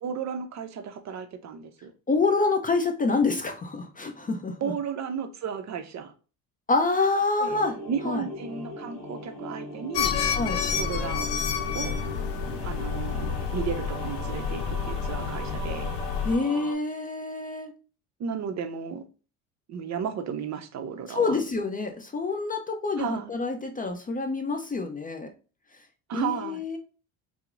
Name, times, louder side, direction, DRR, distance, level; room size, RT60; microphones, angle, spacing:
voice 1, 0.0-1.9 4.6-6.1 7.4-7.6 7.8-10.2 10.7-11.3 11.7-12.0 12.6-15.9 18.2-19.0 19.7-21.4 23.0-23.3 26.1-26.6, right 7 dB, 40° right, 0.5 m, -34 dB
voice 2, 2.1-4.7 6.7-7.7 8.0-8.2 10.3-10.6 16.2-17.7 21.1-25.3 26.1-26.8, left 3 dB, 20° left, 0.4 m, -27 dB
sound 1, 7.5-16.8, left 1 dB, ahead, 1.7 m, -39 dB
sound 2, 9.9-16.4, left 7 dB, 70° left, 0.6 m, -29 dB
4.3 x 2.0 x 2.5 m
hypercardioid pair, 70°, 43 cm